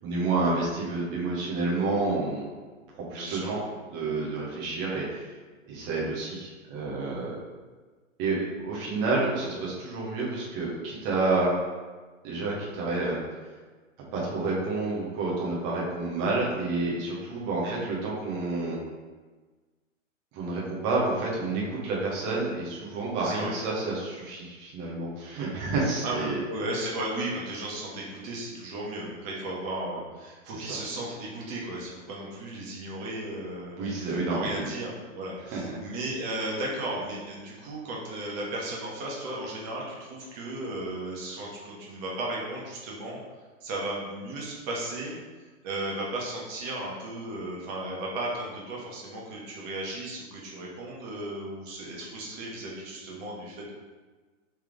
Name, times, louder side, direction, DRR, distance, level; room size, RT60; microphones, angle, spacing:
voice 1, 0.0-2.4 3.1-3.6 3.9-5.3 5.7-7.4 8.2-11.6 12.2-13.2 14.0-18.8 20.3-26.4 30.5-30.6 33.8-34.6 35.5-35.8, right 3 dB, 15° right, -4 dB, 0.4 m, -29 dB
voice 2, 3.1-3.6 8.2-8.5 17.6-17.8 23.2-23.5 26.0-43.2 43.6-45.2 45.6-53.7, right 1 dB, 30° right, -3 dB, 1.0 m, -35 dB
3.4 x 3.2 x 3.6 m, 1.4 s
hypercardioid pair, 140°, 39 cm